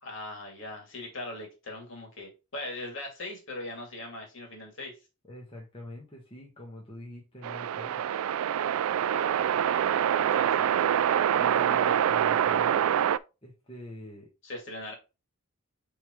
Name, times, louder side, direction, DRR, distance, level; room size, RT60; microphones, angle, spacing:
voice 1, 0.0-5.0 9.1-10.9 11.8-12.0 14.4-14.9, left 2 dB, 60° left, 2.5 m, -41 dB
voice 2, 5.2-8.1 11.3-13.0 13.4-14.3, left 1 dB, 25° left, 1.3 m, -44 dB
sound 1, 7.4-13.2, right 9 dB, 80° right, 0.3 m, -25 dB
8.4 x 3.7 x 3.1 m
head